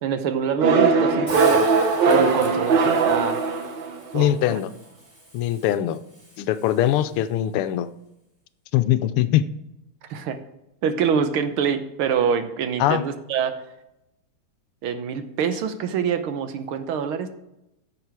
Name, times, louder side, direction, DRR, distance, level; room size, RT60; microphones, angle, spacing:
voice 1, 0.0-1.7 2.1-3.4 4.1-4.4 10.1-10.4 10.8-13.6 14.8-17.3, right 7 dB, 75° right, 9 dB, 1.7 m, -25 dB
sound 1, 0.6-4.1, right 4 dB, 60° right, 1.6 m, -19 dB
Hiss, 1.3-7.3, equal, 15° right, 4.3 m, -44 dB
voice 2, 4.1-4.7 5.3-6.0 6.4-7.9 8.7-9.5 12.8-13.0, left 12 dB, 85° left, 12 dB, 1.5 m, -21 dB
11.0 x 7.2 x 4.7 m, 0.88 s
omnidirectional pair, 2.4 m